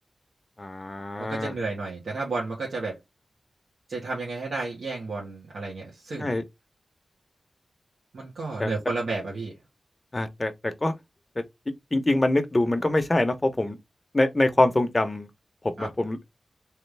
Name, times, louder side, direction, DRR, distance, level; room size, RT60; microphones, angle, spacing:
voice 1, 0.6-1.5 6.2-6.4 8.6-8.7 10.1-10.9 11.9-13.8 14.1-15.3 15.6-16.2, left 1 dB, 25° left, 1.0 m, -24 dB
voice 2, 1.3-2.9 3.9-6.3 8.1-9.5 15.8-15.9, right 3 dB, 85° right, 1.7 m, -32 dB
3.4 x 3.2 x 3.4 m
wide cardioid pair, 70°, 0 cm